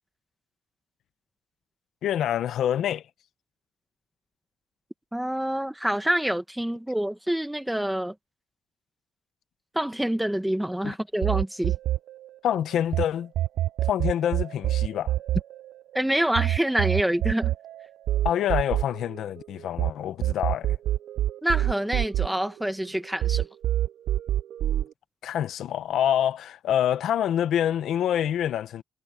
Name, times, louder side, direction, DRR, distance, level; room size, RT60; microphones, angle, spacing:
voice 1, 2.0-3.0 10.8-10.9 12.4-13.3 13.9-15.1 18.2-20.7 25.2-28.8, left 10 dB, 75° left, 0.7 m, -26 dB
voice 2, 5.1-8.1 9.7-11.7 15.9-17.5 21.4-23.5, right 1 dB, 5° right, 1.1 m, -26 dB
sound 1, 11.2-13.0 13.3-19.9 20.2-22.9 23.2-24.9, right 13 dB, 80° right, 0.5 m, -26 dB
wide cardioid pair, 180°, 0 cm